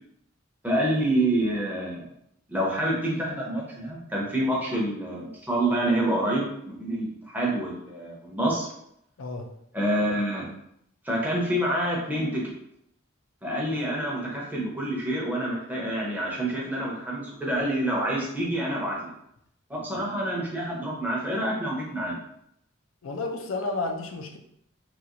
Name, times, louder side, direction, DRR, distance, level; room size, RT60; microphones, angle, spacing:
voice 1, 0.6-2.1 2.5-8.7 9.7-10.5 11.0-12.4 13.4-19.1 19.7-22.2, right 1 dB, 10° right, -4 dB, 0.7 m, -27 dB
voice 2, 9.2-9.5 23.0-24.4, left 3 dB, 75° left, 5 dB, 0.5 m, -31 dB
2.9 x 2.8 x 2.5 m, 0.75 s
head